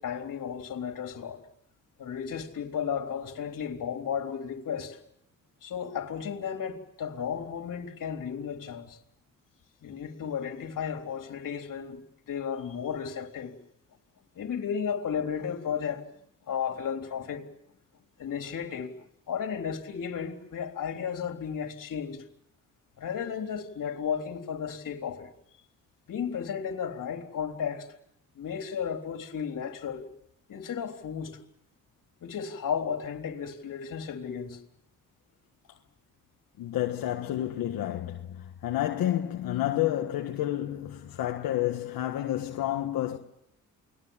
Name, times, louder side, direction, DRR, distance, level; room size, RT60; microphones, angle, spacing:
voice 1, 0.0-1.4 2.0-5.0 5.6-9.0 9.8-12.0 12.3-13.5 14.4-16.1 16.5-17.5 18.2-18.9 19.3-22.2 23.0-25.3 26.1-27.9 28.4-30.1 30.5-31.4 32.2-34.6, left 7 dB, 70° left, 3.8 m, -34 dB
voice 2, 36.6-43.2, left 13 dB, 90° left, 1.6 m, -30 dB
29.5 x 21.0 x 7.3 m
cardioid pair, 70°, 33 cm